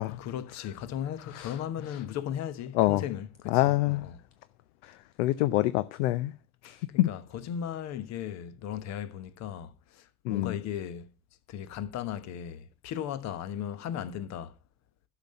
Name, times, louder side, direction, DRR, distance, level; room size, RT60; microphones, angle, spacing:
voice 1, 0.0-4.2 6.9-11.1 11.5-14.5, left 9 dB, 35° left, 1.1 m, -37 dB
voice 2, 3.5-4.1 5.2-6.3 6.6-7.1 10.3-10.5, left 17 dB, 55° left, 0.6 m, -26 dB
12.0 x 5.9 x 5.4 m
hypercardioid pair, 90°, 44 cm